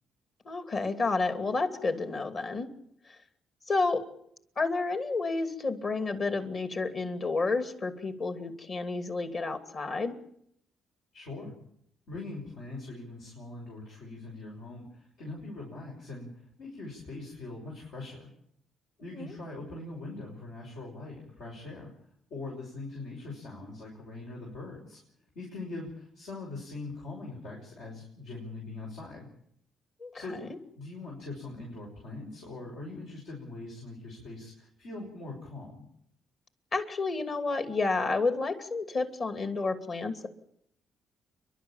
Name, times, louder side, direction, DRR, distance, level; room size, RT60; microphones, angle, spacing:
voice 1, 0.4-2.7 3.7-4.0 4.6-10.2 19.1-19.3 30.0-30.5 36.7-40.3, left 3 dB, 45° left, 8 dB, 2.7 m, -30 dB
voice 2, 11.1-11.5 12.1-18.3 19.0-21.9 22.3-25.0 25.3-29.3 30.1-35.8, left 2 dB, 80° left, -3 dB, 6.1 m, -42 dB
28.5 x 12.0 x 8.9 m, 0.72 s
cardioid pair, 90°, 0 cm